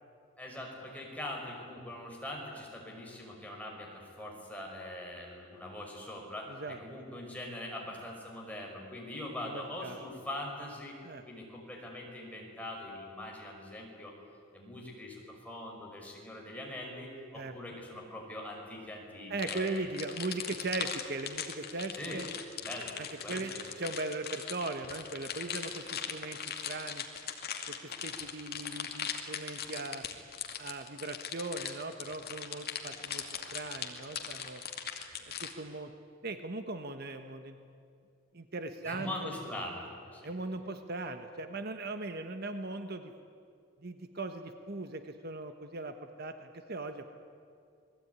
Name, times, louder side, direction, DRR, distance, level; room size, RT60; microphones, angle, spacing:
voice 1, 0.4-11.0 11.3-14.1 14.5-19.9 21.9-22.2 22.6-23.0 23.2-23.6 38.8-40.3, left 1 dB, 5° left, -1 dB, 5.6 m, -42 dB
voice 2, 9.4-10.0 11.0-11.2 17.3-17.5 19.3-22.3 23.0-26.4 26.7-27.0 27.7-30.0 30.6-33.2 33.5-34.6 35.4-35.9 36.2-37.6 38.3-39.3 40.2-43.1 43.8-47.0, right 2 dB, 50° right, 7 dB, 1.3 m, -39 dB
sound 1, 19.4-35.5, left 8 dB, 50° left, 2.4 m, -39 dB
28.5 x 20.5 x 9.7 m, 2.3 s
head